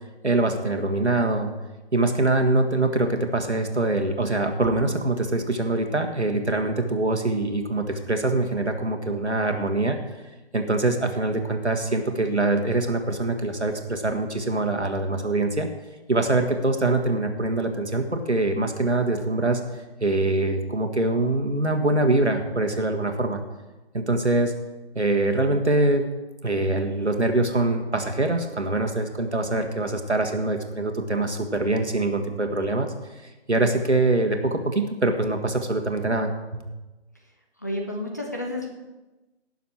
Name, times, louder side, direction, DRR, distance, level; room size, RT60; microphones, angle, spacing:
voice 1, 0.2-1.5 1.9-10.0 10.5-15.7 16.1-19.6 20.0-23.4 23.9-24.5 25.0-26.0 26.4-32.9 33.5-36.6, right 2 dB, 85° right, 4 dB, 1.8 m, -24 dB
voice 2, 37.6-38.7, left 1 dB, 15° left, 1 dB, 0.6 m, -30 dB
18.0 x 6.9 x 4.6 m, 1.1 s
figure-of-eight pair, 150°, 33 cm